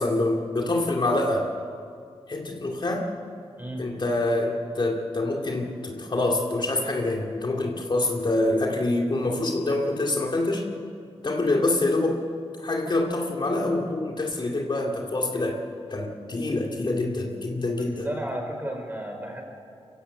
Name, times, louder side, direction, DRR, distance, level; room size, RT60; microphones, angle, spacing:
voice 1, 0.0-1.5 2.3-3.1 3.8-10.7 11.2-12.2 12.6-15.6 15.9-18.1, left 2 dB, 45° left, 1 dB, 2.3 m, -26 dB
voice 2, 3.6-3.9 17.7-19.4, right 1 dB, 20° right, 3 dB, 4.6 m, -33 dB
23.0 x 15.5 x 8.1 m, 2.3 s
cardioid pair, 65°, 11 cm